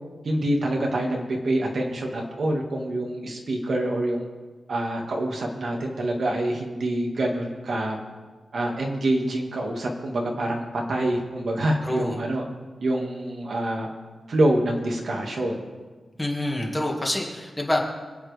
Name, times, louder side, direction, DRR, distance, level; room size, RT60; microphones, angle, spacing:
voice 1, 0.2-4.2 4.7-8.0 8.5-12.5 12.8-13.9 14.3-15.6, right 1 dB, 55° right, 0 dB, 1.9 m, -26 dB
voice 2, 11.8-12.2 16.2-17.8, left 1 dB, 10° left, -1 dB, 2.0 m, -26 dB
26.5 x 8.8 x 3.5 m, 1.3 s
wide cardioid pair, 170°, 0 cm